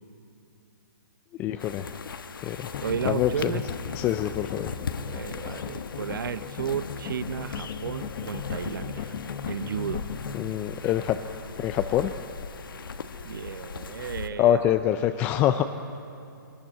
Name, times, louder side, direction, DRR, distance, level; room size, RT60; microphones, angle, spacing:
voice 1, 1.4-1.9 2.4-2.7 3.1-3.5 3.9-4.7 10.3-11.2 11.6-12.1 14.4-15.6, left 11 dB, 15° left, 9 dB, 0.4 m, -25 dB
sound 1, 1.6-14.3, left 5 dB, 75° left, 1.2 m, -39 dB
sound 2, 2.7-10.4, left 7 dB, 30° left, 1.1 m, -37 dB
voice 2, 2.8-3.6 5.1-9.1 9.5-10.0 13.2-14.6, right 7 dB, 70° right, 14 dB, 0.9 m, -33 dB
22.0 x 19.0 x 8.7 m, 2.6 s
hypercardioid pair, 155°, 11 cm